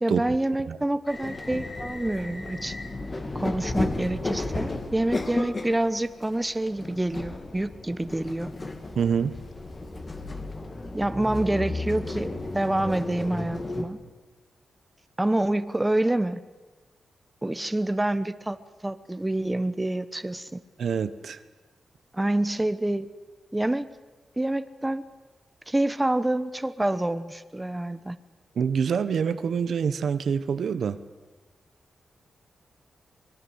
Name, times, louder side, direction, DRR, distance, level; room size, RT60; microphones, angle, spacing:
voice 1, 0.0-2.8 3.3-8.5 10.9-14.0 15.2-16.4 17.4-18.6 18.8-20.6 22.1-23.1 23.5-23.9 24.4-25.0 25.7-28.2, right 1 dB, 15° right, 12 dB, 1.0 m, -27 dB
sound 1, 1.1-13.8, left 2 dB, 30° left, 2.6 m, -34 dB
voice 2, 9.0-9.3 20.8-21.4 28.6-31.0, right 6 dB, 75° right, 12 dB, 1.1 m, -26 dB
24.5 x 20.0 x 8.1 m, 1.2 s
cardioid pair, 90°, 0 cm